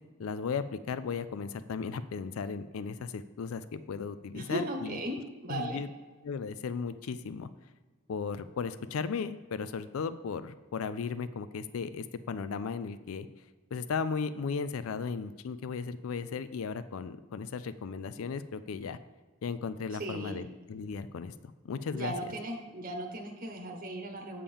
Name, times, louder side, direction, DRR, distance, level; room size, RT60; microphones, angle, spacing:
voice 1, 0.2-5.0 5.5-5.9 6.2-7.5 8.1-13.3 13.7-19.0 19.4-21.3 21.6-22.1, left 5 dB, 80° left, 13 dB, 0.4 m, -36 dB
voice 2, 4.3-5.2 5.4-5.8 20.0-20.5 21.9-24.4, right 1 dB, 45° right, 3 dB, 1.0 m, -37 dB
8.4 x 3.7 x 6.9 m, 1.3 s
head